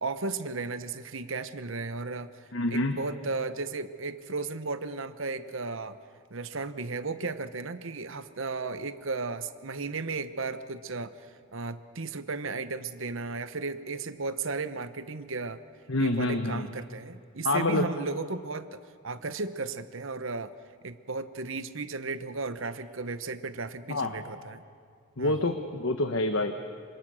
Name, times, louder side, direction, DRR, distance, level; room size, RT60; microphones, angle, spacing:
voice 1, 0.0-6.0 6.3-15.6 16.0-20.5 20.8-24.6 25.2-25.6, right 3 dB, 60° right, 12 dB, 1.0 m, -35 dB
voice 2, 2.5-3.0 15.9-16.7 17.4-17.8 23.9-24.1 25.2-26.5, left 2 dB, 65° left, 6 dB, 1.2 m, -27 dB
26.5 x 25.0 x 6.4 m, 2.3 s
head